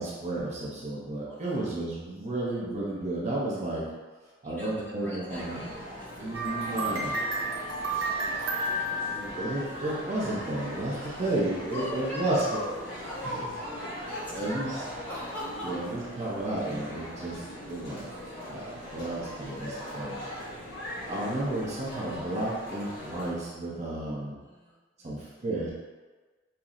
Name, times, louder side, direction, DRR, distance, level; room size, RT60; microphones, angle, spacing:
voice 1, 0.0-3.9 4.4-5.6 6.2-7.2 9.1-12.4 14.3-14.7 15.6-18.1 18.5-20.2 21.0-24.4 25.0-25.7, right 1 dB, 35° right, -6 dB, 0.6 m, -32 dB
voice 2, 1.2-1.7 4.4-7.4 8.0-8.5 9.0-9.4 10.9-11.4 11.7-16.2 18.3-20.5 24.4-25.3, left 1 dB, 10° left, -8 dB, 0.8 m, -41 dB
sound 1, 5.3-23.3, equal, 85° left, 1.1 m, -40 dB
sound 2, 6.3-10.1, right 1 dB, 75° right, 0.7 m, -31 dB
5.5 x 2.0 x 2.4 m, 1.4 s
head